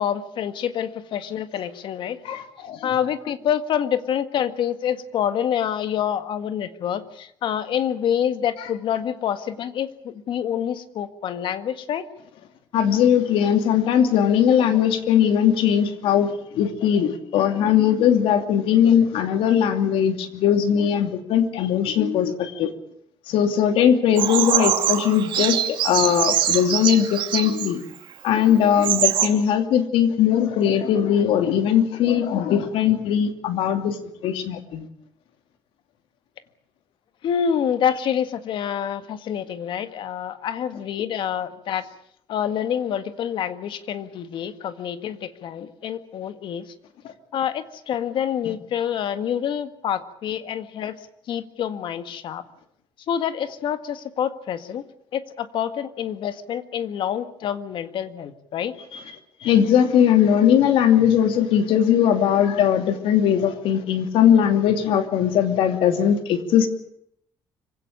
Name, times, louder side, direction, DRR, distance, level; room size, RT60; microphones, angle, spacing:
voice 1, 0.0-2.2 2.8-12.1 37.2-41.9 42.3-46.7 47.3-51.0 51.3-52.4 53.1-54.8 55.1-58.7, left 9 dB, 65° left, 10 dB, 1.8 m, -27 dB
voice 2, 2.2-2.9 8.6-8.7 12.7-22.7 23.3-27.8 28.2-34.0 34.2-34.9 48.4-48.5 58.9-59.0 59.4-66.7, left 9 dB, 85° left, 7 dB, 2.7 m, -20 dB
Bird vocalization bird call bird song, 24.2-27.7 28.4-28.5 28.7-29.3, right 11 dB, 65° right, 2.6 m, -23 dB
25.5 x 17.0 x 8.6 m, 0.71 s
cardioid pair, 120°, 9 cm